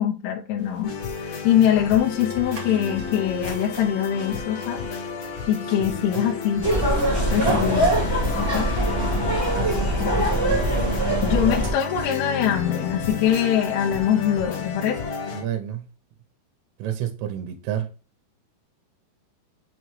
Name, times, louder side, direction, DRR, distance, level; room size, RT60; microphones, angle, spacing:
voice 1, 0.0-4.9 5.5-6.6 7.3-7.9 8.4-8.7 10.0-10.3 11.2-15.0, left 10 dB, 80° left, 3.2 m, -23 dB
sound 1, 0.6-14.9, right 3 dB, 45° right, 1.6 m, -41 dB
sound 2, 0.8-15.4, left 5 dB, 55° left, 3.1 m, -32 dB
voice 2, 5.8-6.3 7.3-7.7 9.4-10.6 15.3-15.9 16.8-17.9, right 10 dB, 85° right, 3.3 m, -32 dB
sound 3, 6.6-11.7, right 1 dB, 10° right, 1.2 m, -22 dB
7.8 x 3.1 x 4.6 m
omnidirectional pair, 5.8 m